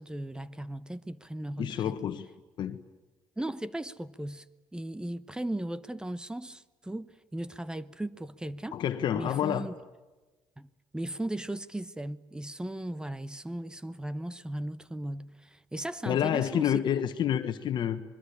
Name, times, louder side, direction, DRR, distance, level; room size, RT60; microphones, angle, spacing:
voice 1, 0.0-2.0 3.4-4.5 4.7-8.8 9.1-9.7 10.6-16.8, right 1 dB, 10° right, 1.0 m, -37 dB
voice 2, 1.6-2.3 2.6-2.8 8.7-9.7 16.1-18.0, left 10 dB, 55° left, 1.4 m, -28 dB
25.5 x 22.5 x 8.5 m
supercardioid pair, 90°, 9 cm